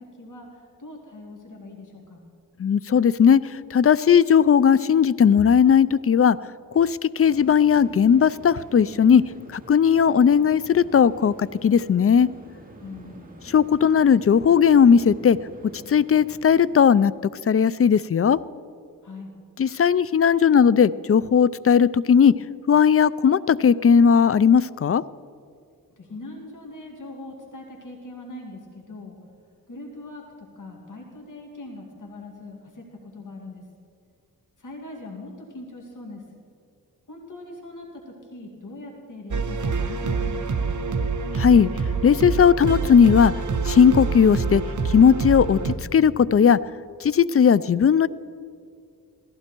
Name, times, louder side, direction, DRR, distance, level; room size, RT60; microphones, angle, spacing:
voice 1, 0.0-2.2 12.8-13.3 19.0-19.3 26.0-29.2 29.7-33.7 34.6-36.2 37.1-40.8, left 2 dB, 60° left, 0 dB, 2.7 m, -41 dB
voice 2, 2.6-6.4 6.7-9.2 9.5-12.3 13.5-15.4 15.9-17.1 17.5-18.4 19.6-22.3 22.7-25.0 41.4-41.7 42.0-43.3 43.6-46.6 47.0-48.1, left 7 dB, 40° left, 19 dB, 0.4 m, -17 dB
sound 1, 7.2-16.9, right 1 dB, 25° right, 2.4 m, -46 dB
sound 2, 39.3-45.8, right 4 dB, 55° right, 1.1 m, -26 dB
17.5 x 15.0 x 4.5 m, 2.3 s
cardioid pair, 70°, 35 cm